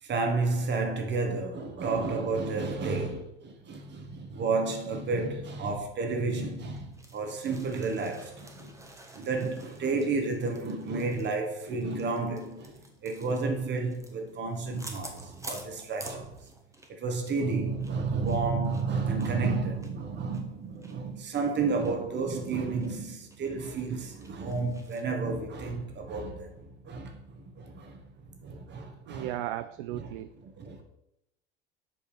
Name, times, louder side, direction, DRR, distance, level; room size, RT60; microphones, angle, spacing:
voice 1, 0.0-16.4 16.9-29.3 29.9-30.8, right 4 dB, 35° right, 1.8 m, -31 dB
sound 1, 6.7-17.0 17.2-17.4 17.8-20.9 21.3-21.4 21.8-21.9 22.3-22.9 23.3-23.4 23.7-25.0, right 1 dB, 10° right, 1.3 m, -49 dB
voice 2, 29.1-30.3, right 14 dB, 55° right, 0.4 m, -35 dB
7.9 x 5.2 x 5.1 m
figure-of-eight pair, 75°, 31 cm